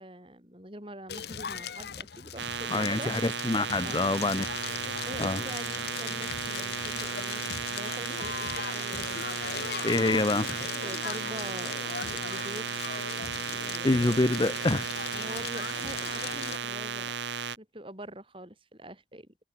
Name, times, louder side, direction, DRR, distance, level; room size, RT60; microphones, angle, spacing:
voice 1, 0.0-3.1 3.8-4.2 4.8-9.4 10.0-10.3 10.8-12.9 13.5-14.3 15.1-17.1 17.6-19.3, right 1 dB, 30° right, 7.7 m, -44 dB
Crackle, 1.1-16.6, left 7 dB, 65° left, 0.8 m, -39 dB
sound 1, 2.4-17.6, right 6 dB, 85° right, 1.2 m, -35 dB
voice 2, 2.7-4.4 5.2-5.4 9.8-10.4 13.8-14.9, left 2 dB, 25° left, 0.6 m, -26 dB
head